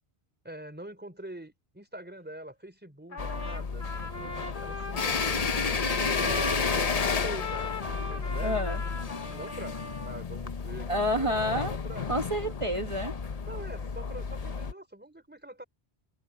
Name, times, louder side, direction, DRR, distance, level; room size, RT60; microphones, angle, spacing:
voice 1, 0.4-5.5 5.9-8.6 9.3-12.1 13.5-15.6, right 1 dB, 10° right, 4.4 m, -44 dB
Trumpet, 3.1-10.2, left 2 dB, 85° left, 2.8 m, -38 dB
sound 1, 3.2-14.7, left 5 dB, 40° left, 0.8 m, -32 dB
voice 2, 8.4-8.8 10.9-11.7 12.1-13.2, equal, 30° right, 1.5 m, -29 dB
omnidirectional pair, 1.1 m